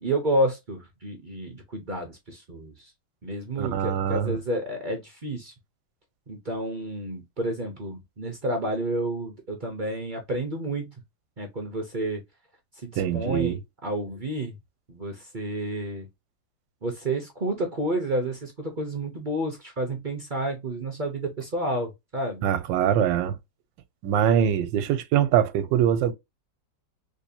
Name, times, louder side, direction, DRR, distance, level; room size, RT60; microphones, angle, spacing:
voice 1, 0.0-2.9 3.2-5.5 6.3-10.9 11.4-12.2 12.8-14.5 14.9-16.1 16.8-22.4, right 1 dB, 45° right, 0.6 m, -30 dB
voice 2, 3.6-4.4 13.0-13.6 22.4-23.4 24.0-26.1, right 9 dB, 90° right, 1.3 m, -23 dB
3.3 x 3.2 x 2.7 m
omnidirectional pair, 2.0 m